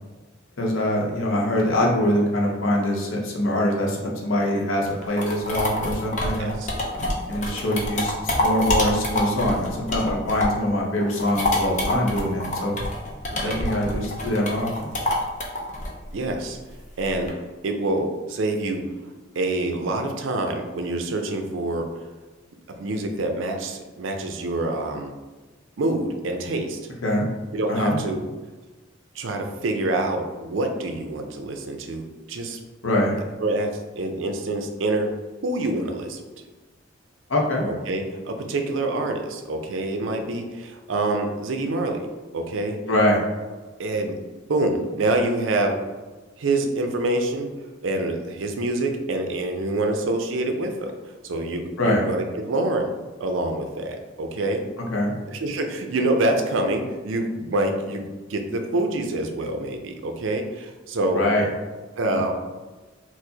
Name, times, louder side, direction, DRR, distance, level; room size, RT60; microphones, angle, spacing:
voice 1, 0.6-6.5 7.3-12.8 13.3-14.9 27.0-27.2 27.7-28.0 32.8-33.2 37.3-37.7 42.9-43.2 51.8-52.0 54.9-55.1 61.1-61.4 62.1-62.2, left 1 dB, 85° left, -2 dB, 0.8 m, -23 dB
sound 1, 4.9-10.7 11.0-17.3, left 1 dB, 40° left, 0.6 m, -26 dB
voice 2, 6.4-6.7 13.4-13.6 16.1-16.6 17.0-17.3 17.6-18.8 19.4-21.9 22.7-25.1 25.8-26.8 27.5-28.2 29.2-32.6 33.4-35.1 35.4-36.2 37.6-42.1 42.3-42.8 43.8-44.2 44.5-45.8 46.4-47.5 47.8-50.9 51.2-52.9 53.2-54.6 55.3-61.2 62.0-62.3, right 2 dB, 75° right, 4 dB, 0.5 m, -26 dB
4.5 x 2.0 x 2.7 m, 1.3 s
head